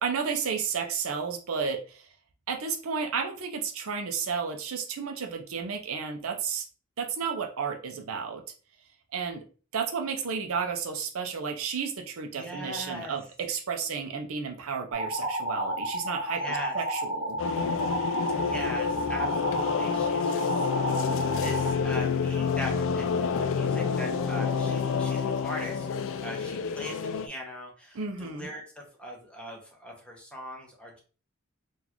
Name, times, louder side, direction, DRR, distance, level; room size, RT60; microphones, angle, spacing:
voice 1, 0.0-2.0 2.5-6.6 7.0-8.4 9.1-9.4 9.7-17.4 27.9-28.5, right 6 dB, 70° right, 4 dB, 0.5 m, -32 dB
voice 2, 12.3-13.2 16.4-16.7 18.4-21.1 21.4-25.9 26.2-31.0, equal, 5° left, -1 dB, 0.8 m, -40 dB
sound 1, 14.9-21.7, right 1 dB, 25° right, 0.9 m, -31 dB
sound 2, 17.4-27.3, left 6 dB, 60° left, 0.3 m, -28 dB
3.9 x 2.4 x 2.9 m, 0.38 s
head